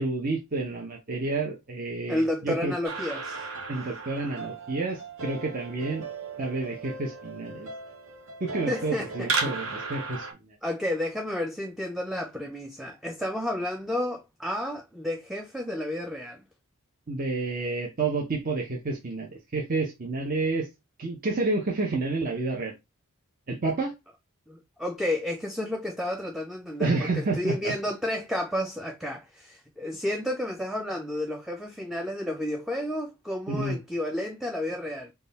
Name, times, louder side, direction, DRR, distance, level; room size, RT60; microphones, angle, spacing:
voice 1, 0.0-2.7 3.7-6.0 6.4-7.7 8.4-10.3 17.1-20.7 21.0-22.7 23.5-23.9 26.8-27.7 33.5-33.8, right 3 dB, 40° right, 0.6 m, -29 dB
voice 2, 2.1-3.5 8.7-9.5 10.6-16.4 24.5-35.1, left 1 dB, ahead, 0.3 m, -31 dB
sound 1, 2.8-10.3, right 4 dB, 65° right, 0.9 m, -35 dB
3.6 x 2.3 x 4.0 m
head